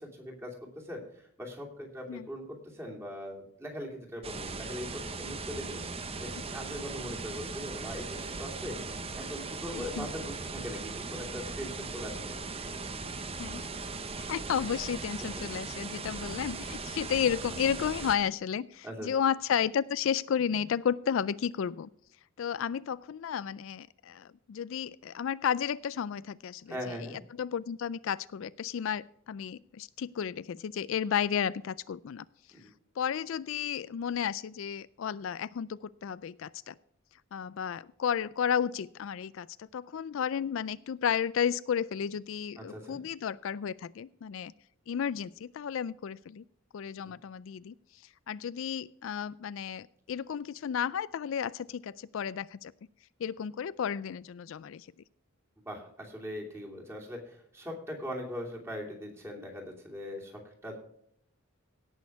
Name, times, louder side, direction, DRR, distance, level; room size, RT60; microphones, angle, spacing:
voice 1, 0.0-5.8 6.2-8.8 9.1-12.8 16.0-16.3 18.8-19.1 26.7-27.2 32.5-32.6 42.6-43.0 47.0-47.1 55.7-60.8, equal, 10° right, -1 dB, 2.8 m, -41 dB
sound 1, 4.2-18.1, right 3 dB, 25° right, 0.9 m, -39 dB
voice 2, 9.7-10.1 13.4-13.6 14.2-21.9 22.4-32.2 33.0-36.7 37.3-44.5 44.9-46.4 46.7-47.7 48.3-52.7 53.2-54.9, left 8 dB, 60° left, 18 dB, 0.3 m, -33 dB
17.5 x 6.4 x 4.6 m, 0.70 s
head